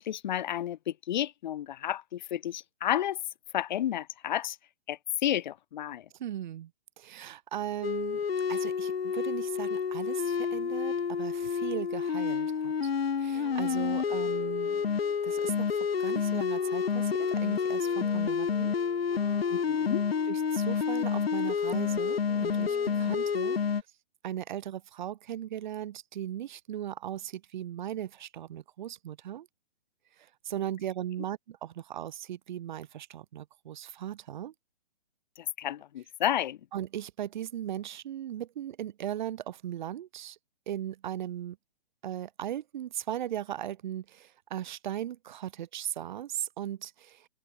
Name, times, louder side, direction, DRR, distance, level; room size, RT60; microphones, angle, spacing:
voice 1, 0.0-3.2 3.5-4.6 4.9-6.0 19.5-20.0 35.6-36.6, left 11 dB, 50° left, 0.8 m, -31 dB
voice 2, 6.2-6.7 7.0-8.2 8.5-12.9 13.2-14.8 15.2-18.7 20.3-23.6 24.2-29.5 30.4-34.5 36.7-40.4 40.7-41.6 42.0-47.3, right 11 dB, 50° right, 5.8 m, -38 dB
sound 1, 7.8-23.8, left 6 dB, 90° left, 2.2 m, -29 dB
Wind instrument woodwind instrument, 13.3-23.4, equal, ahead, 2.0 m, -52 dB
hypercardioid pair, 150°, 29 cm